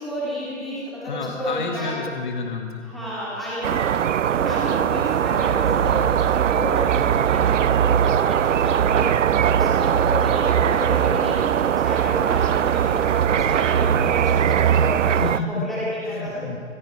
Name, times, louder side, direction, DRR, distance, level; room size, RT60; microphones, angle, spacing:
voice 1, 0.0-2.1 2.8-4.1 4.3-9.1 9.5-16.4, equal, ahead, -10 dB, 2.6 m, -31 dB
voice 2, 1.0-2.9 15.0-15.7 16.0-16.6, left 4 dB, 40° left, 3 dB, 1.6 m, -30 dB
sound 1, 3.6-15.4, right 9 dB, 70° right, 0.6 m, -20 dB
Truck, 4.7-14.4, left 2 dB, 55° left, 5.0 m, -48 dB
26.0 x 9.5 x 4.8 m, 2.2 s
hypercardioid pair, 170°, 38 cm